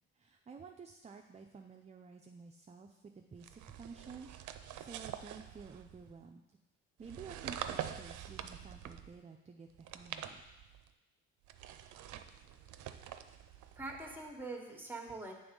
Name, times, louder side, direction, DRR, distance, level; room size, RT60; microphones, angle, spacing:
voice 1, 0.1-6.4 7.0-10.4, right 5 dB, 25° right, 3 dB, 0.4 m, -52 dB
sound 1, 3.4-6.2 7.0-9.2 9.7-10.9 11.4-14.3, right 10 dB, 75° right, 0.5 m, -46 dB
voice 2, 13.7-15.3, right 2 dB, 5° right, 2 dB, 1.2 m, -44 dB
7.7 x 3.6 x 5.3 m, 1.0 s
cardioid pair, 90°, 30 cm